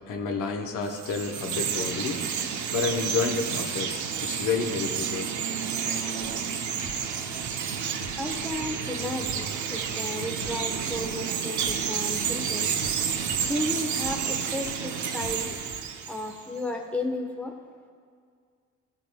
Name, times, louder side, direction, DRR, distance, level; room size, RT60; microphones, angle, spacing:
voice 1, 0.1-2.2 2.7-5.3, left 5 dB, 80° left, 2 dB, 1.0 m, -30 dB
Chirp tweet, 0.8-16.5, right 7 dB, 70° right, 0.8 m, -30 dB
sound 1, 6.2-6.5 6.8-7.7 8.0-8.9 9.2-10.1 10.4-11.3 11.6-12.5 12.8-13.7 14.0-14.9 15.2-15.8, left 1 dB, 35° left, 2.0 m, -44 dB
voice 2, 8.2-12.7 13.4-15.5 16.1-17.5, left 1 dB, 5° left, 2 dB, 1.1 m, -33 dB
16.0 x 7.4 x 2.3 m, 2.1 s
cardioid pair, 90°, 30 cm